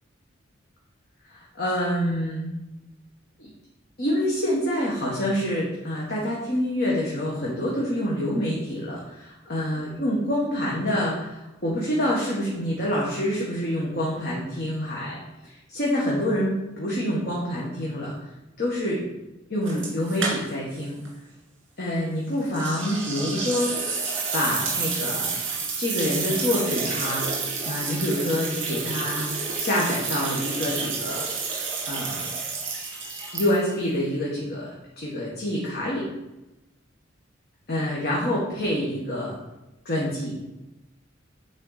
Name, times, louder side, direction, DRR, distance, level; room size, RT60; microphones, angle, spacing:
voice 1, 1.3-2.5 3.4-3.5 4.0-15.2 15.4-18.3 18.6-19.0 19.5-21.0 21.8-24.0 24.3-25.3 25.8-31.3 31.9-32.2 33.3-34.7 35.0-36.1 37.7-39.3 39.8-40.3, equal, 50° left, -5 dB, 1.5 m, -27 dB
sound 1, 19.7-20.8 21.0-21.1 22.5-33.8, right 4 dB, 65° right, 2.4 m, -30 dB
9.1 x 4.2 x 4.0 m, 0.99 s
head